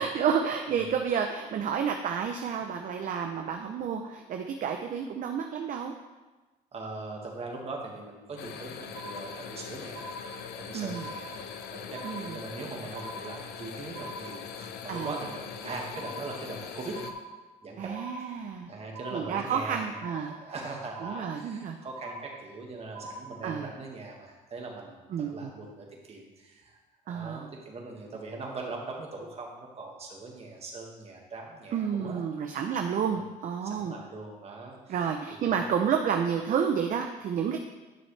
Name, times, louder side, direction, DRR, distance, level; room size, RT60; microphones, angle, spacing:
voice 1, 0.0-5.9 10.7-11.1 12.0-12.3 14.9-15.2 17.8-18.7 19.1-20.3 21.0-21.8 23.4-23.7 25.1-25.5 27.1-27.5 31.7-33.9 34.9-37.6, right 7 dB, 50° right, 4 dB, 0.7 m, -30 dB
voice 2, 6.7-10.2 10.6-11.4 11.7-17.0 17.6-17.9 18.2-19.9 20.1-26.8 27.1-32.2 33.1-33.2 33.6-35.0 35.5-35.7, right 3 dB, 35° right, 0 dB, 1.8 m, -41 dB
sound 1, 8.4-17.1, left 7 dB, 75° left, 0.8 m, -41 dB
sound 2, 8.9-9.6 9.9-10.6 10.9-11.6 11.9-12.6 12.9-13.6 13.9-14.6 14.9-15.6 15.9-16.6 16.9-17.6 17.9-18.6 18.9-19.6 19.9-20.6 20.9-21.6 21.9-22.6 22.9-23.6, right 1 dB, 80° right, 1.8 m, -43 dB
11.0 x 6.2 x 3.3 m, 1.2 s
cardioid pair, 110°, 17 cm